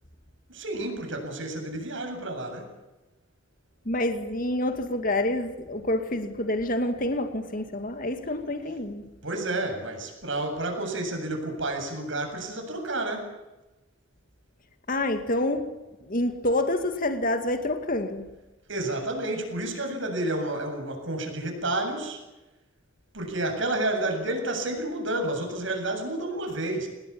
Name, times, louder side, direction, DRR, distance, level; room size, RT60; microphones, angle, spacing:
voice 1, 0.5-2.7 9.2-13.4 18.7-22.2 23.1-26.9, right 2 dB, 70° right, 7.8 m, -30 dB
voice 2, 3.8-9.1 14.9-15.7 16.1-18.3, left 1 dB, 45° left, 2.3 m, -27 dB
26.5 x 20.0 x 8.7 m
head